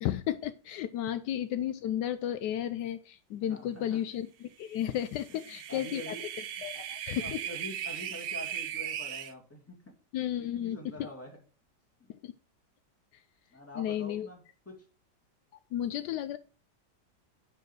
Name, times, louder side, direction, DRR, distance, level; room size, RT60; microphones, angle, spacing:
voice 1, 0.0-6.1 6.6-7.4 10.1-10.8 12.2-12.3 13.8-14.3 15.7-16.4, left 11 dB, 80° left, 12 dB, 1.2 m, -33 dB
voice 2, 3.5-4.0 5.3-6.3 6.7-6.9 7.2-9.9 10.4-11.4 13.5-14.8, left 1 dB, 10° left, 0 dB, 2.3 m, -46 dB
sound 1, 5.0-9.3, right 10 dB, 60° right, 0.9 m, -38 dB
10.5 x 4.7 x 4.6 m, 0.35 s
omnidirectional pair, 1.9 m